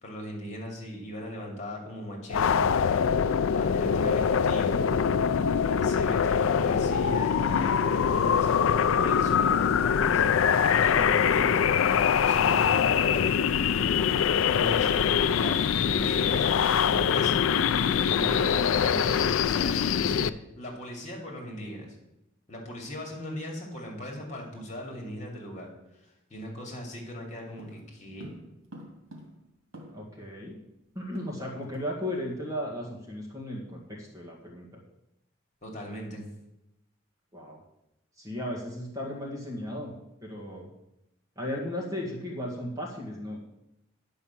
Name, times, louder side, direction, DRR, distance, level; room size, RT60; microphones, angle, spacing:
voice 1, 0.0-4.9 5.7-10.2 10.8-11.6 12.2-13.5 14.4-15.0 15.4-16.5 16.8-17.4 18.0-20.3 20.6-21.9 22.5-25.7 26.0-28.3 35.6-36.2, equal, 35° left, 0 dB, 2.6 m, -39 dB
sound 1, 2.3-20.3, left 7 dB, 80° left, 0.4 m, -23 dB
voice 2, 18.8-19.1 29.9-30.6 30.9-34.8 37.3-37.6 38.2-39.9 40.2-40.7 41.4-43.4, left 1 dB, 15° right, -2 dB, 1.8 m, -36 dB
sound 2, 27.6-30.2 30.5-30.6 30.9-31.9 32.1-32.4 32.7-33.0, equal, 80° right, 2.3 m, -49 dB
10.5 x 5.6 x 7.2 m, 0.87 s
head